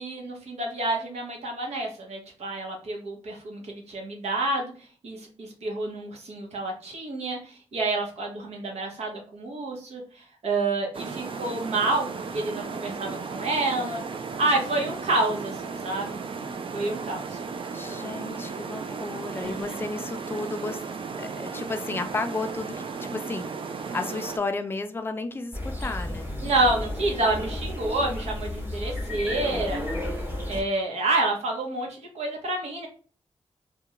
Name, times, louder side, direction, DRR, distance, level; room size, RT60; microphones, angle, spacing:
voice 1, 0.0-4.7 5.0-14.0 14.4-16.2 16.7-17.4 19.4-19.5 26.4-29.8 30.5-32.9, right 2 dB, 80° right, 1 dB, 0.8 m, -28 dB
sound 1, 10.9-24.4, right 5 dB, 55° right, 0.4 m, -35 dB
voice 2, 17.7-20.8 21.2-26.3, left 3 dB, 20° left, 7 dB, 0.3 m, -33 dB
sound 2, 25.5-30.6, left 1 dB, 20° right, 0.9 m, -32 dB
2.4 x 2.2 x 2.9 m, 0.39 s
cardioid pair, 75°, 11 cm